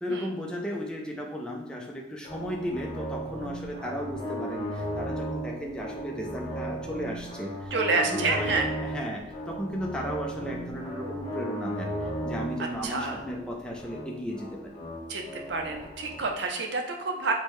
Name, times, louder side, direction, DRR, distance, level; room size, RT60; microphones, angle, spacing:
voice 1, 0.0-14.8, equal, 5° left, -1 dB, 0.4 m, -35 dB
sound 1, 2.2-16.3, equal, 30° left, 0.7 m, -36 dB
voice 2, 7.7-8.7 12.8-13.2 15.1-15.2 15.5-17.3, right 3 dB, 65° right, 2 dB, 0.6 m, -28 dB
4.4 x 2.1 x 3.0 m, 1.0 s
head